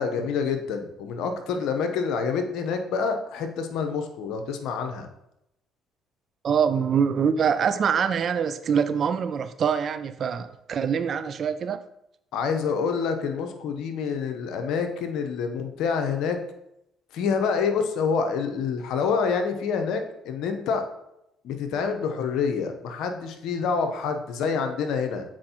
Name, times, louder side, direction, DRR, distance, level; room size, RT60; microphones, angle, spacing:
voice 1, 0.0-5.1 12.3-16.4 17.1-20.8 21.4-25.2, left 5 dB, 70° left, 0.8 m, -27 dB
voice 2, 6.4-11.8, right 7 dB, 50° right, 0.4 m, -24 dB
7.6 x 4.5 x 2.9 m
hypercardioid pair, 55°, 0 cm